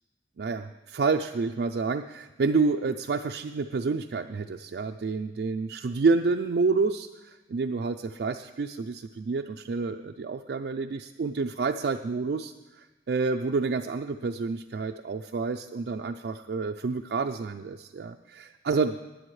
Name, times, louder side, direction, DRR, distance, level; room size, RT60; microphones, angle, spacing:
voice 1, 0.4-18.9, right 4 dB, 60° right, 4 dB, 0.4 m, -29 dB
19.0 x 10.0 x 3.2 m, 1.1 s
head